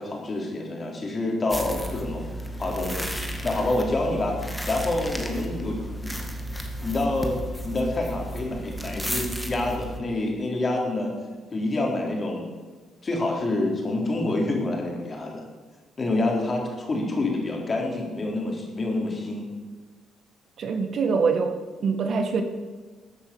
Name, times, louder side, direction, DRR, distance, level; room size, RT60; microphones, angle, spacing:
voice 1, 0.0-2.2 2.6-3.1 3.4-6.2 6.8-11.1 11.5-12.4 13.0-15.5 16.0-19.5, left 2 dB, 35° left, 0 dB, 4.2 m, -27 dB
sound 1, 1.5-10.0, right 1 dB, ahead, 2.0 m, -33 dB
voice 2, 20.6-21.5 21.8-22.4, right 5 dB, 60° right, 6 dB, 1.6 m, -24 dB
14.0 x 8.5 x 7.2 m, 1.4 s
cardioid pair, 90°, 0 cm